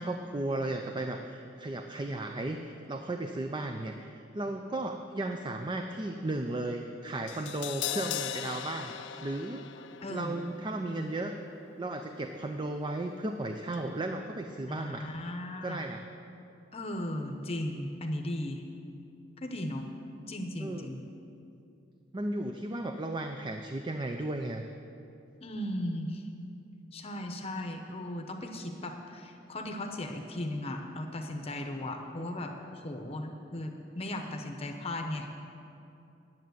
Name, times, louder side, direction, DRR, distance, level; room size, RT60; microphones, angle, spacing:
voice 1, 0.0-9.0 9.2-9.7 10.1-11.3 11.8-15.1 15.6-16.0 20.6-20.9 22.1-24.6 32.2-32.3, right 2 dB, 25° right, 5 dB, 0.5 m, -35 dB
Crash cymbal, 7.3-13.4 13.7-13.8, left 10 dB, 75° left, 0.5 m, -41 dB
voice 2, 10.0-10.4 14.7-15.8 16.7-18.6 19.4-19.9 20.3-21.0 25.4-26.3 26.9-35.3, left 1 dB, 35° left, 4 dB, 0.8 m, -36 dB
10.5 x 7.4 x 9.2 m, 2.7 s
head